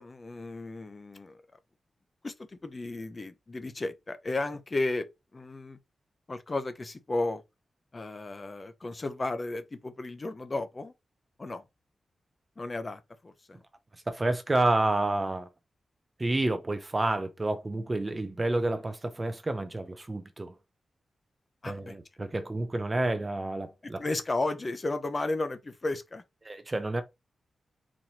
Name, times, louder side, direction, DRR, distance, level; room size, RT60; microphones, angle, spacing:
voice 1, 0.0-1.4 2.2-2.3 2.6-5.1 5.3-5.8 6.3-7.4 7.9-10.9 11.4-11.6 12.6-13.6 21.6-22.0 24.0-26.2, left 2 dB, 30° left, 0.5 m, -33 dB
voice 2, 14.1-15.5 16.2-20.5 21.7-24.0 26.4-27.0, right 2 dB, 20° right, 0.5 m, -29 dB
4.1 x 3.0 x 2.8 m
wide cardioid pair, 145°, 0 cm